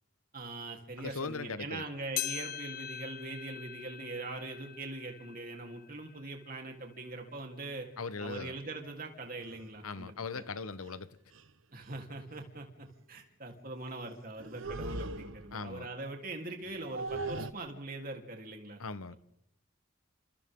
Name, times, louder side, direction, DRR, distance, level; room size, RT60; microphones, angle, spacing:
voice 1, 0.3-7.9 8.2-10.4 11.7-18.8 19.1-19.2, right 2 dB, 40° right, 3.6 m, -42 dB
voice 2, 1.0-1.8 8.0-8.5 9.8-11.2 15.5-15.9 18.8-19.1, left 4 dB, 85° left, 1.1 m, -39 dB
sound 1, 2.2-6.8 7.3-7.4 8.2-8.3 9.2-9.3, left 10 dB, 40° left, 1.3 m, -42 dB
sound 2, 9.4-9.7 10.9-11.0 11.3-11.5 11.8-12.0 14.4-15.7 16.6-17.5, right 2 dB, 65° right, 1.2 m, -39 dB
30.0 x 27.5 x 3.8 m
head